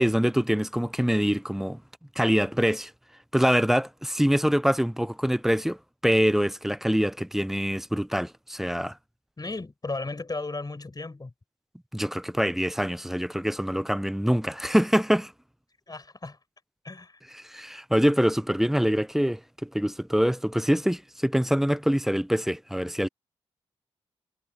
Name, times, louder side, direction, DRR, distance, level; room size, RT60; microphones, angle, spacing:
voice 1, 0.0-1.8 2.2-2.9 3.3-5.8 6.0-9.0 11.9-15.3 17.4-23.1, equal, 5° right, 0.3 m, -24 dB
voice 2, 9.4-11.3 15.9-16.4 16.8-17.2, left 3 dB, 30° left, 4.6 m, -35 dB
supercardioid pair, 40°, 13 cm